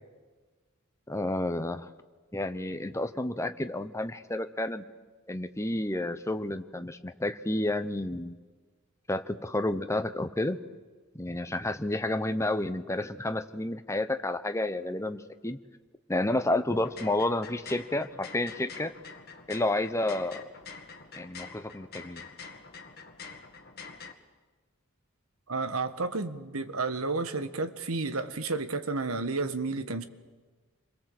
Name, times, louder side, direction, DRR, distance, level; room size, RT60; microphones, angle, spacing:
voice 1, 1.1-1.9 2.3-4.8 5.3-8.4 9.1-10.6 11.1-15.6 16.1-18.9 19.5-20.4 21.1-22.2, left 1 dB, 15° left, 1.0 m, -30 dB
sound 1, 16.7-24.1, left 5 dB, 50° left, 2.1 m, -46 dB
voice 2, 25.5-30.0, right 3 dB, 80° right, 1.5 m, -31 dB
28.5 x 22.5 x 7.9 m
head